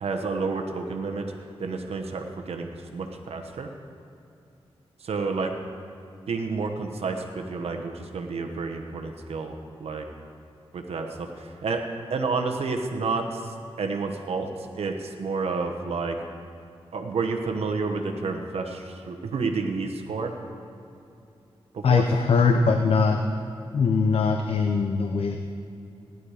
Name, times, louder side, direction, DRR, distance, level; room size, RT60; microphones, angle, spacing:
voice 1, 0.0-1.3 1.6-3.7 5.0-5.5 6.3-9.5 9.8-10.0 10.7-11.8 12.1-13.5 13.8-14.5 14.7-16.1 16.9-20.3 21.7-22.1, right 4 dB, 85° right, 3 dB, 1.1 m, -30 dB
voice 2, 21.8-23.2 23.7-25.4, left 4 dB, 70° left, 5 dB, 0.7 m, -21 dB
16.0 x 11.0 x 4.9 m, 2.6 s
cardioid pair, 75°, 10 cm